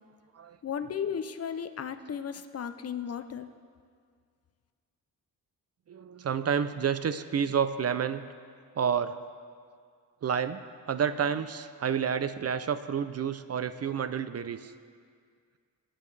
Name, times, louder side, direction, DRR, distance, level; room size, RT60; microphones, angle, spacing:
voice 1, 0.6-3.5, left 7 dB, 40° left, 10 dB, 0.5 m, -35 dB
voice 2, 5.9-8.2 8.8-9.2 10.2-14.7, right 7 dB, 45° right, 12 dB, 0.5 m, -29 dB
23.0 x 10.0 x 3.3 m, 2.1 s
wide cardioid pair, 155°, 37 cm